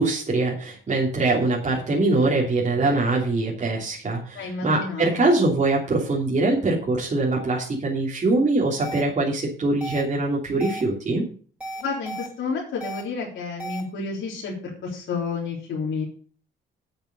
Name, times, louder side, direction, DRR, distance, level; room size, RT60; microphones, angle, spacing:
voice 1, 0.0-11.2, right 2 dB, 35° right, -3 dB, 3.1 m, -23 dB
voice 2, 4.3-5.2 11.8-16.0, left 4 dB, 70° left, -4 dB, 3.6 m, -30 dB
sound 1, 8.8-9.0 9.8-10.0 10.6-10.8 11.6-12.3 12.8-13.0 13.6-13.8, right 1 dB, 5° right, 5.0 m, -34 dB
8.0 x 8.0 x 6.8 m, 0.42 s
cardioid pair, 90°, 20 cm